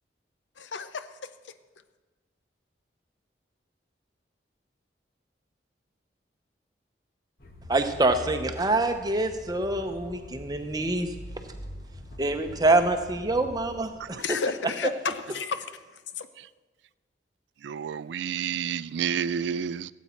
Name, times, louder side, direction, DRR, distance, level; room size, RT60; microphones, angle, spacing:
voice 1, 0.6-1.1 14.2-15.6 16.2-16.3, left 5 dB, 85° left, 0.7 m, -31 dB
sound 1, 7.4-14.2, equal, 55° left, 1.3 m, -44 dB
voice 2, 7.7-11.1 12.2-14.4, right 2 dB, 20° right, 0.8 m, -25 dB
voice 3, 17.6-19.9, right 8 dB, 75° right, 0.3 m, -30 dB
16.5 x 8.3 x 4.4 m
head